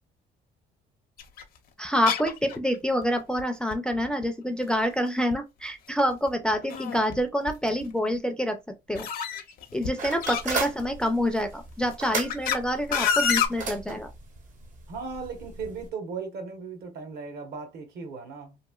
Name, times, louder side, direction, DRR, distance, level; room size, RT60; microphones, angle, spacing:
sound 1, 1.2-1.4 2.1-2.7 3.0-3.1 3.4-3.5 3.7-4.2 5.3-5.4 6.1-7.2 7.5-7.8 8.9-11.1 11.8-12.6 12.9-13.5, left 7 dB, 60° left, 0.6 m, -28 dB
voice 1, 1.8-9.1 9.7-14.1, equal, 5° left, 0.4 m, -27 dB
sound 2, 10.0-15.9, right 4 dB, 50° right, 0.7 m, -36 dB
voice 2, 14.9-18.6, right 5 dB, 70° right, 1.0 m, -37 dB
3.0 x 2.4 x 2.3 m
cardioid pair, 110°, 17 cm